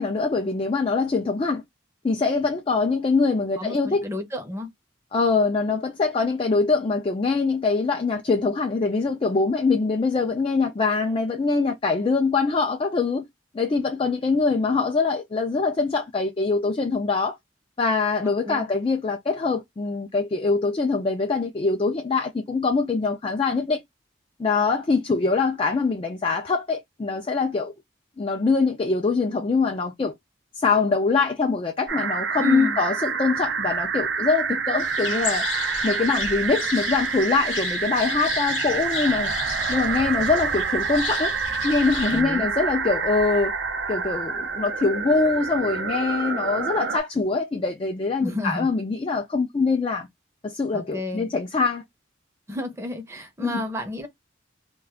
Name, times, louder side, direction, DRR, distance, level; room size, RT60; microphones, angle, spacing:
voice 1, 0.0-1.6 2.0-4.0 5.1-13.3 13.5-17.4 17.8-23.8 24.4-27.7 28.2-30.1 30.5-35.5 35.8-39.3 39.7-41.4 41.6-43.5 43.9-50.1 50.4-51.8 53.4-53.6, left 4 dB, 30° left, 0.3 m, -23 dB
voice 2, 3.6-4.7 18.2-18.7 32.4-32.8 42.1-42.5 48.2-48.7 50.7-51.3 52.5-54.1, left 1 dB, 15° right, 0.6 m, -31 dB
sound 1, 31.9-47.0, right 5 dB, 65° right, 0.5 m, -27 dB
sound 2, 34.8-42.2, left 7 dB, 90° left, 0.7 m, -34 dB
2.3 x 2.3 x 3.4 m
head